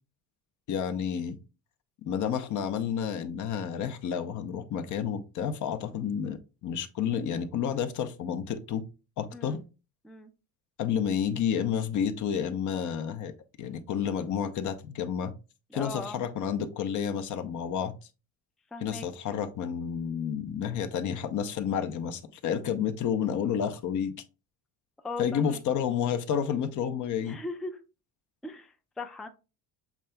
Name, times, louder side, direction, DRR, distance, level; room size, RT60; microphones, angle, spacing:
voice 1, 0.7-1.4 2.0-8.8 9.2-9.6 10.8-13.3 13.6-15.3 15.7-17.9 18.8-24.1 25.2-27.4, left 8 dB, 50° left, 0.7 m, -30 dB
voice 2, 15.7-16.2 18.7-19.1 25.0-25.6 27.2-27.8 28.4-29.3, left 2 dB, ahead, 0.4 m, -39 dB
7.2 x 3.3 x 2.2 m
supercardioid pair, 100°, 39 cm